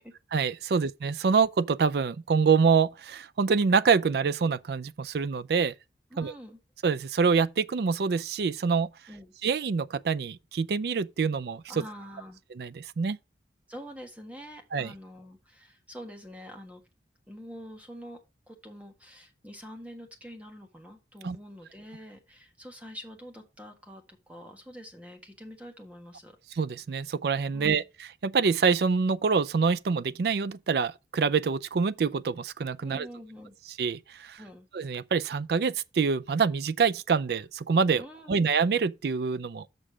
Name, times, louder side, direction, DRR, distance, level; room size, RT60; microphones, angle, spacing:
voice 1, 0.3-5.7 6.2-6.3 6.8-8.9 9.4-11.8 12.6-13.2 14.7-14.9 21.2-21.4 26.6-27.8 28.2-33.1 33.8-34.4 34.7-38.0 38.3-39.7, right 5 dB, 60° right, 0.4 m, -26 dB
voice 2, 6.1-6.6 9.1-9.3 11.7-12.4 13.7-16.8 17.3-18.2 18.5-26.4 27.5-27.9 32.8-33.6 34.4-34.7 37.9-38.4, equal, 10° right, 1.4 m, -46 dB
6.7 x 6.1 x 4.9 m
head